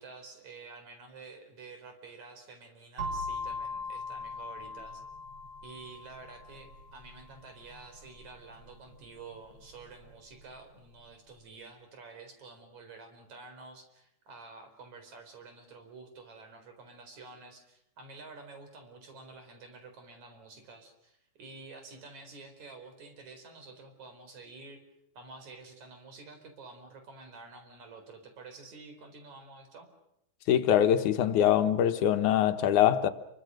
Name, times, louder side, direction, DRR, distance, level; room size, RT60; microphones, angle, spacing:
voice 1, 0.0-5.0 5.6-24.8 25.2-29.9, right 3 dB, 70° right, 5.7 m, -50 dB
sound 1, 3.0-10.8, left 2 dB, 45° right, 7.3 m, -41 dB
voice 2, 30.5-33.1, left 10 dB, 90° left, 2.7 m, -23 dB
28.5 x 24.0 x 6.4 m
omnidirectional pair, 3.4 m